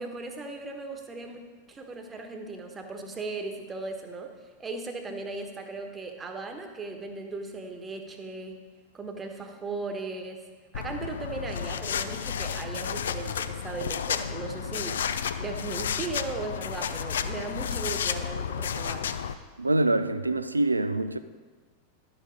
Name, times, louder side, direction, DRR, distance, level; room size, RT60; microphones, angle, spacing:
voice 1, 0.0-1.4 1.7-4.3 4.6-8.5 8.9-10.4 10.7-15.0 15.4-19.0, right 3 dB, 20° right, 1.3 m, -37 dB
sound 1, 10.7-19.3, left 7 dB, 65° left, 0.5 m, -32 dB
voice 2, 19.6-21.2, right 2 dB, 80° right, 0.4 m, -25 dB
11.5 x 7.1 x 5.1 m
figure-of-eight pair, 90°, 0 cm